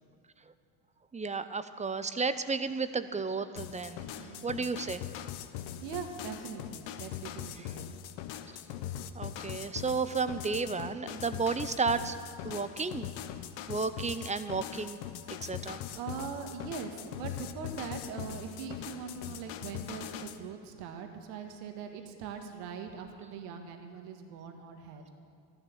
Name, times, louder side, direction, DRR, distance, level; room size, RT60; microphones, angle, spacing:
voice 1, 1.1-4.1 4.4-5.0 9.2-12.1 12.4-13.1 13.7-15.0 15.4-15.8, right 4 dB, 15° right, 12 dB, 0.6 m, -32 dB
sound 1, 3.6-20.4, left 10 dB, 65° left, 1.0 m, -41 dB
voice 2, 4.2-4.5 5.8-7.9 15.9-25.1, right 6 dB, 70° right, 5 dB, 1.7 m, -41 dB
14.0 x 11.5 x 7.2 m, 2.4 s
hypercardioid pair, 80°, 48 cm